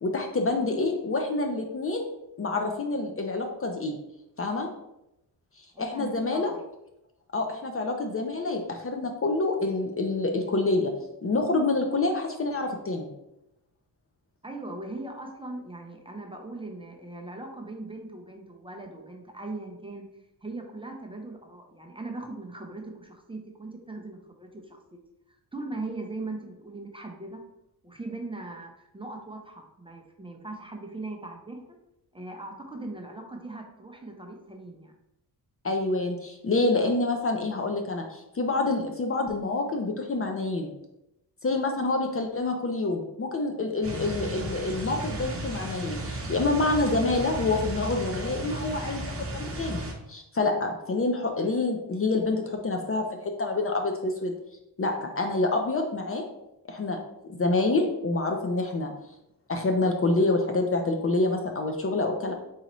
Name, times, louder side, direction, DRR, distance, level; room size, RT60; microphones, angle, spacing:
voice 1, 0.0-2.1 2.4-4.0 4.4-4.7 5.8-6.5 7.3-10.9 11.2-13.1 35.6-40.7 41.4-53.1 53.4-54.3 54.8-56.2 56.7-57.0 57.3-58.9 59.5-62.3, left 2 dB, 35° left, 3 dB, 0.5 m, -27 dB
voice 2, 5.7-6.6 14.4-25.0 25.3-27.4 27.8-31.6 32.1-34.9, right 2 dB, 15° right, 1 dB, 0.6 m, -39 dB
sound 1, 43.8-49.9, right 1 dB, 35° right, 0.9 m, -34 dB
4.1 x 3.8 x 3.0 m, 0.86 s
wide cardioid pair, 125°, 40 cm